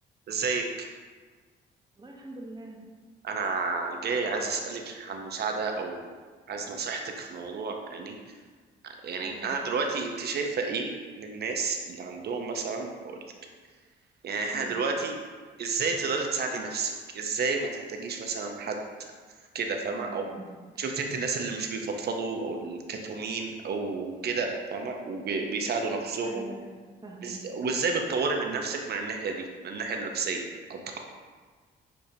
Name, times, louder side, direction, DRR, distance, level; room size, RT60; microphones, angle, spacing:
voice 1, 0.3-0.7 3.2-6.1 6.5-8.2 8.8-10.9 11.2-13.2 14.2-15.2 15.6-18.8 19.5-20.3 20.8-26.5 27.2-31.0, right 4 dB, 55° right, 3 dB, 0.6 m, -31 dB
voice 2, 2.0-2.8 9.2-9.6 14.5-14.8 20.0-20.5 20.7-20.9 25.8-27.4, right 2 dB, 20° right, -1 dB, 0.9 m, -44 dB
6.7 x 2.8 x 2.7 m, 1.5 s
cardioid pair, 90°, 20 cm